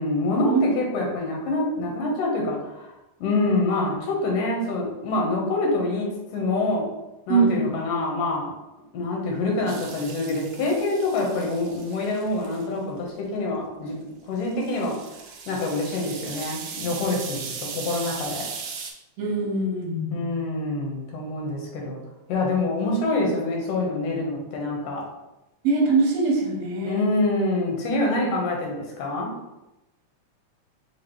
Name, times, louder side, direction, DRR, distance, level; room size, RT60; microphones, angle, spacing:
voice 1, 0.0-2.9 3.2-6.9 7.3-8.5 8.9-14.0 14.3-15.0 15.5-18.5 20.1-22.0 22.3-25.0 26.8-29.3, left 2 dB, 85° left, -1 dB, 2.6 m, -26 dB
voice 2, 7.3-7.7 19.2-20.4 25.6-27.0, right 4 dB, 65° right, -1 dB, 1.8 m, -23 dB
sound 1, 9.7-12.7 14.4-18.9, right 6 dB, 90° right, 1.4 m, -38 dB
5.8 x 2.8 x 3.0 m, 0.96 s
omnidirectional pair, 3.6 m